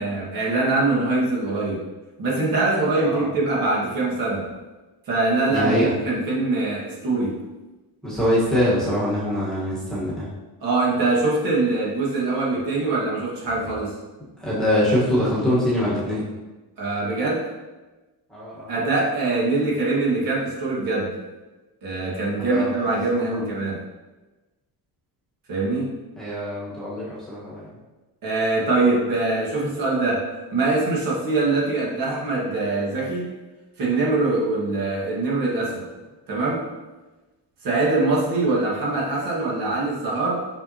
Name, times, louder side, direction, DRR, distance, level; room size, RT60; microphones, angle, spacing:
voice 1, 0.0-1.9 2.2-4.5 5.1-7.4 10.6-14.0 16.8-17.5 18.7-21.1 21.8-23.8 25.5-25.9 28.2-33.3 33.8-35.9 36.3-36.7 37.6-40.5, right 2 dB, 55° right, -5 dB, 1.8 m, -23 dB
voice 2, 5.5-5.9 8.0-10.3 14.4-16.2 18.3-18.7 22.5-22.9 23.3-23.4 26.2-27.7, left 1 dB, ahead, -9 dB, 1.4 m, -23 dB
5.9 x 5.5 x 2.9 m, 1.2 s
cardioid pair, 180°, 40 cm